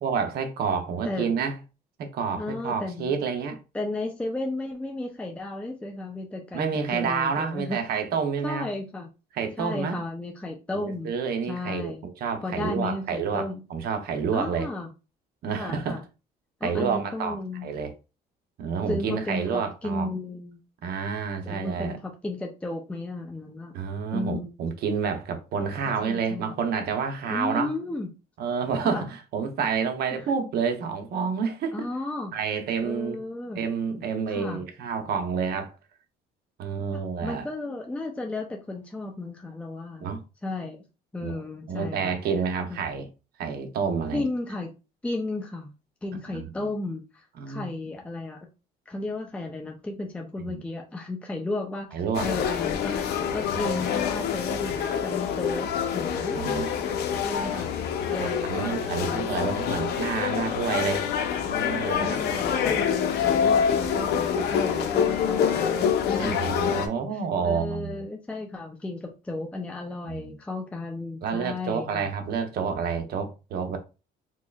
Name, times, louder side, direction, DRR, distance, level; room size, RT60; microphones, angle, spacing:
voice 1, 0.0-1.6 2.0-3.6 6.5-8.7 9.3-9.9 10.7-14.7 15.4-16.0 16.6-17.9 18.6-20.1 20.8-22.0 23.7-27.7 28.4-31.9 32.3-33.2 33.5-35.7 36.6-37.5 40.0-40.2 41.2-41.4 41.7-43.1 43.4-44.2 46.3-46.5 47.4-47.7 50.4-50.6 51.9-52.3 53.6-53.8 56.3-56.7 58.2-61.0 61.5-62.2 66.2-68.0 70.1-70.4 71.2-73.8, right 6 dB, 65° right, 0.8 m, -29 dB
voice 2, 2.3-3.2 3.7-7.8 8.4-9.1 9.6-11.1 11.4-12.0 12.4-13.6 14.3-14.9 15.6-16.0 16.6-17.7 18.9-20.6 21.5-23.7 24.1-24.5 26.0-26.5 27.3-28.1 28.8-29.1 31.7-32.3 32.8-33.6 34.3-34.6 36.9-40.1 40.4-40.8 41.1-42.1 42.7-42.8 44.1-44.7 45.0-45.7 46.0-48.4 48.9-53.0 53.3-56.4 57.2-57.7 58.1-59.3 62.0-66.5 67.4-72.1, left 2 dB, 5° left, 0.5 m, -34 dB
sound 1, 52.1-66.9, left 8 dB, 75° left, 0.7 m, -26 dB
3.7 x 3.0 x 2.3 m
cardioid pair, 110°, 17 cm